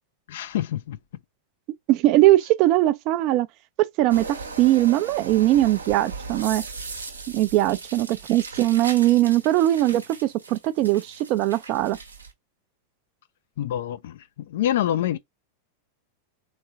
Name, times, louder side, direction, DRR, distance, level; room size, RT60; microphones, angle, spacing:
voice 1, 0.3-1.0 13.6-15.2, left 11 dB, 55° left, 0.4 m, -26 dB
voice 2, 1.9-3.5 3.8-6.6 7.3-12.0, right 15 dB, 40° right, 0.4 m, -20 dB
sound 1, 4.1-12.3, right 4 dB, 75° right, 0.9 m, -38 dB
3.5 x 3.1 x 2.7 m
figure-of-eight pair, 90°, 0 cm